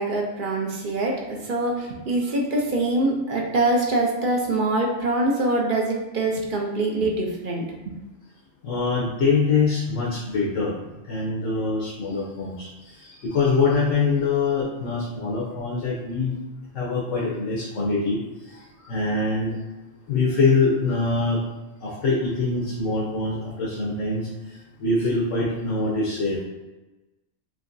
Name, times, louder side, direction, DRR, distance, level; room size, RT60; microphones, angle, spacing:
voice 1, 0.0-8.0, right 2 dB, 50° right, 0 dB, 0.8 m, -24 dB
voice 2, 8.6-16.4 16.7-18.2 18.5-19.6 20.1-21.4 21.8-26.4, left 3 dB, 80° left, -4 dB, 1.2 m, -24 dB
5.1 x 3.0 x 2.6 m, 1.1 s
omnidirectional pair, 1.3 m